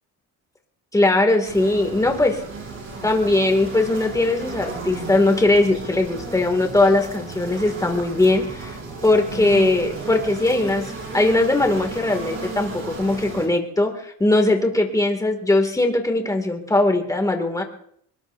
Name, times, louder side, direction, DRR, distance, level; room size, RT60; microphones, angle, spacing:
voice 1, 0.9-2.4 3.0-8.8 9.0-17.6, left 2 dB, 10° left, 4 dB, 2.3 m, -20 dB
sound 1, 1.4-13.5, right 3 dB, 40° right, 5.9 m, -34 dB
24.5 x 21.0 x 2.7 m, 0.67 s
cardioid pair, 135°, 31 cm